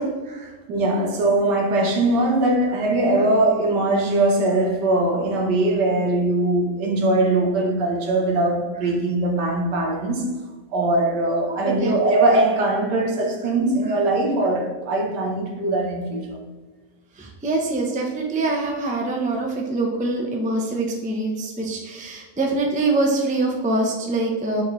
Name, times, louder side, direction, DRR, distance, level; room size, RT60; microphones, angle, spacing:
voice 1, 0.0-0.5 11.6-11.9 17.2-24.6, right 2 dB, 10° right, 0.4 m, -24 dB
voice 2, 0.7-10.2 10.7-16.4, right 2 dB, 80° right, 1.7 m, -21 dB
6.4 x 4.8 x 3.1 m
omnidirectional pair, 1.8 m